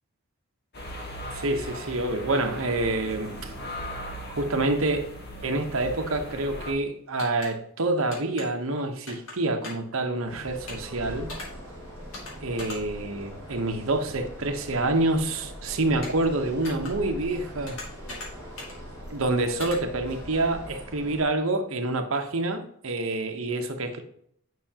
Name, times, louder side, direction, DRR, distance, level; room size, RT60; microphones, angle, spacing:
sound 1, 0.7-6.7, equal, 50° left, 1.3 m, -38 dB
voice 1, 1.3-3.5 4.3-5.1 5.4-11.3 12.4-17.8 19.1-24.0, right 2 dB, 70° right, 5 dB, 1.0 m, -27 dB
sound 2, 7.2-7.5 8.1-8.5 9.1-9.3 9.6-9.9 10.7-10.9 11.3-11.5 12.1-12.3 12.6-12.8 16.0-16.3 16.6-16.9 17.7-18.3 18.6-18.8 19.6-19.8, left 2 dB, 65° left, 2.2 m, -38 dB
sound 3, 10.3-21.2, equal, 15° left, 2.7 m, -41 dB
9.5 x 5.7 x 2.9 m, 0.69 s
head